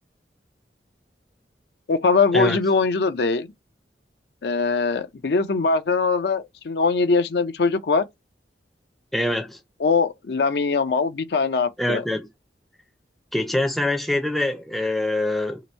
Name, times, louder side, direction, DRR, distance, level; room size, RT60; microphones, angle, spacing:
voice 1, 1.9-3.5 4.4-8.0 9.8-12.0, left 4 dB, 65° left, 0.5 m, -21 dB
voice 2, 9.1-9.6 11.8-12.3 13.3-15.6, left 1 dB, ahead, 0.5 m, -24 dB
2.9 x 2.6 x 4.3 m
head